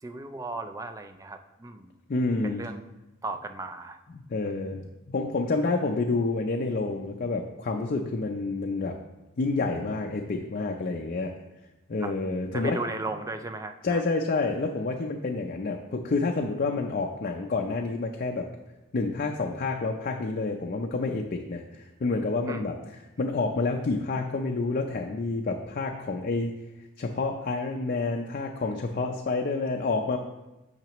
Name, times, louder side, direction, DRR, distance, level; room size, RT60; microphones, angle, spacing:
voice 1, 0.0-1.9 2.4-2.9 3.2-4.0 12.0-12.1 12.5-14.0 22.5-22.7, right 2 dB, 15° right, 7 dB, 0.4 m, -36 dB
voice 2, 2.1-2.7 4.3-8.9 9.4-11.3 11.9-12.8 13.8-18.5 18.9-22.7 23.2-26.6 27.0-30.2, left 3 dB, 40° left, 2 dB, 0.5 m, -28 dB
8.9 x 5.8 x 3.0 m, 1.0 s
head